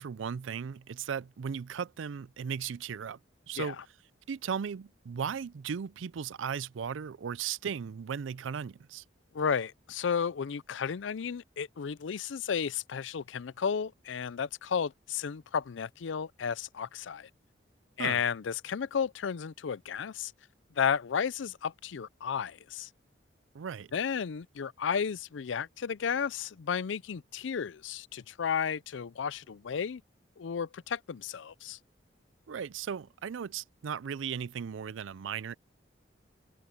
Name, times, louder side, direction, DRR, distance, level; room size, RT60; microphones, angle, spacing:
voice 1, 0.0-3.2 3.5-3.8 4.3-9.0 18.0-18.2 23.5-23.9 32.5-35.6, right 7 dB, 85° right, 0.4 m, -36 dB
voice 2, 9.3-17.3 18.0-20.3 20.8-22.9 23.9-30.0 30.4-31.8, left 7 dB, 80° left, 0.5 m, -33 dB
head